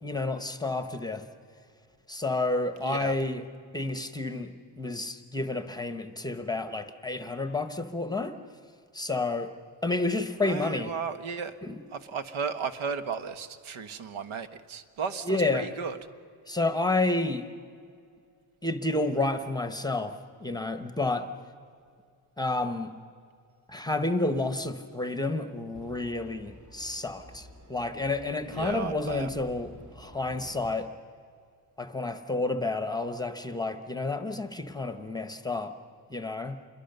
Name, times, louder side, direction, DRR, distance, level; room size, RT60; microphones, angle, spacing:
voice 1, 0.0-1.2 2.1-3.4 3.7-8.4 8.9-9.5 9.8-10.9 11.6-11.8 15.2-15.7 16.5-17.5 18.6-21.3 22.4-22.9 23.7-30.9 31.8-35.7 36.1-36.6, left 2 dB, 10° left, 9 dB, 0.9 m, -30 dB
voice 2, 2.8-3.1 10.5-11.6 11.9-16.0 28.5-29.3, right 6 dB, 85° right, 10 dB, 1.5 m, -34 dB
sound 1, 25.7-30.7, equal, 40° right, 2.4 m, -50 dB
27.5 x 22.5 x 6.7 m, 2.3 s
wide cardioid pair, 165°, 47 cm